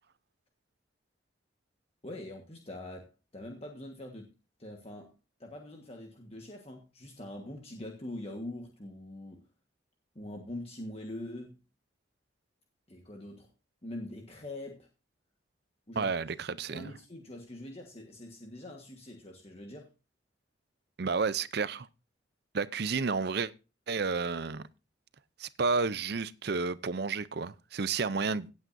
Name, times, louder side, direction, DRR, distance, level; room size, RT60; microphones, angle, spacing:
voice 1, 2.0-4.3 4.6-5.1 5.4-9.4 10.1-11.6 12.9-13.5 13.8-14.9 15.9-16.1 16.5-19.9, left 1 dB, 30° left, 1.5 m, -43 dB
voice 2, 16.0-16.9 21.0-21.9 22.5-23.5 23.9-24.6 25.4-28.5, right 4 dB, 55° right, 0.6 m, -31 dB
17.0 x 8.7 x 2.6 m
head